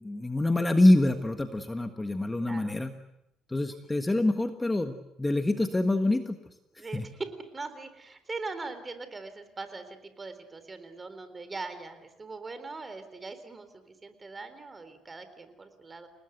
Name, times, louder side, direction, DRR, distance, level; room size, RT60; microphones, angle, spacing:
voice 1, 0.0-2.9 3.5-6.4 6.9-7.0, left 1 dB, 15° left, 7 dB, 1.5 m, -25 dB
voice 2, 2.4-2.8 6.8-16.1, right 3 dB, 25° right, 10 dB, 3.9 m, -41 dB
29.5 x 19.5 x 8.1 m, 0.85 s
cardioid pair, 110°, 0 cm